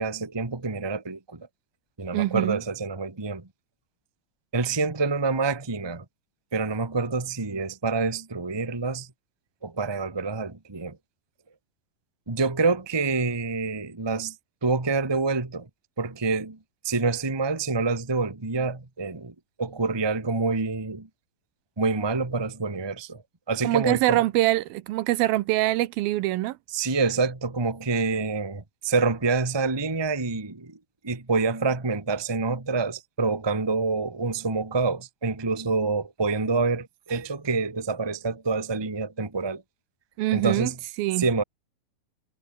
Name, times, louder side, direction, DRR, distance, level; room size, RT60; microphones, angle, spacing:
voice 1, 0.0-1.5 2.0-3.5 4.5-6.0 6.5-9.1 9.6-11.0 12.3-14.3 14.6-15.7 16.0-16.6 16.8-21.1 21.8-23.2 23.5-24.2 26.7-30.8 31.0-39.6 40.3-40.8 41.2-41.4, right 4 dB, 15° right, 0.9 m, -27 dB
voice 2, 2.1-2.6 23.6-26.6 40.2-40.7 41.0-41.3, right 16 dB, 80° right, 2.6 m, -24 dB
omnidirectional pair, 4.3 m